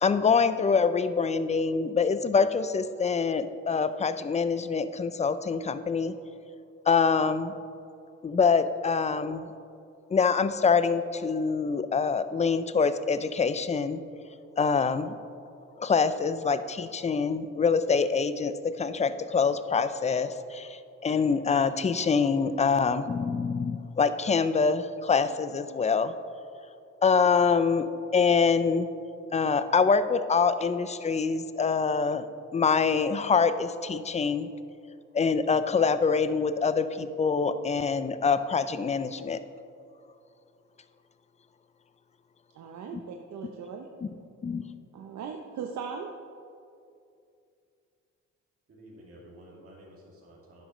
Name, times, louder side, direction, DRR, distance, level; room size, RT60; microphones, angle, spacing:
voice 1, 0.0-6.2 6.9-7.5 8.2-9.4 10.1-14.0 14.6-15.2 15.8-26.1 27.0-28.9 29.3-32.3 32.5-34.5 35.1-39.4 44.4-44.6, left 5 dB, 25° left, 12 dB, 0.4 m, -25 dB
voice 2, 42.5-43.9 44.9-46.1, right 6 dB, 65° right, 2 dB, 0.8 m, -38 dB
voice 3, 48.7-50.6, right 1 dB, 50° right, -5 dB, 2.4 m, -51 dB
11.5 x 9.9 x 3.1 m, 2.5 s
cardioid pair, 90°, 30 cm